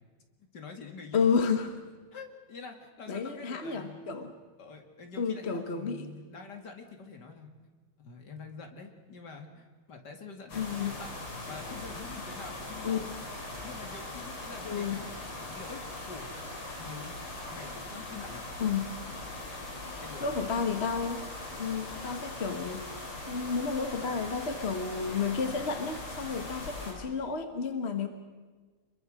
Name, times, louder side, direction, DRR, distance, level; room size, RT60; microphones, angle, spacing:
voice 1, 0.4-1.3 2.1-4.0 4.6-7.5 8.0-11.1 11.5-12.9 13.6-17.2 17.5-18.5 20.0-20.3, left 4 dB, 55° left, 4 dB, 2.8 m, -46 dB
voice 2, 1.1-1.7 3.1-4.3 5.2-6.1 10.5-11.0 12.8-13.1 14.6-15.0 18.6-18.9 20.2-21.2 21.6-22.9 23.3-28.1, left 5 dB, 35° left, 7 dB, 1.4 m, -31 dB
sound 1, 10.5-26.9, left 2 dB, 85° left, 5.0 m, -41 dB
26.5 x 22.0 x 6.4 m, 1.4 s
omnidirectional pair, 2.3 m